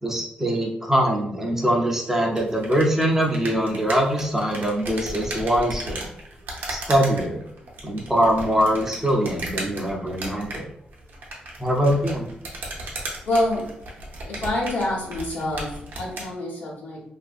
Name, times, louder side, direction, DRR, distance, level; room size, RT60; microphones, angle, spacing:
voice 1, 0.0-6.1 6.7-7.4 7.8-10.7 11.6-12.3, equal, 15° right, 0 dB, 0.5 m, -23 dB
sound 1, 2.3-16.3, right 1 dB, 85° right, 0.7 m, -36 dB
voice 2, 13.2-13.7 14.3-17.0, left 1 dB, 80° left, -3 dB, 1.0 m, -26 dB
2.6 x 2.5 x 2.4 m, 0.74 s
cardioid pair, 100°, 3 cm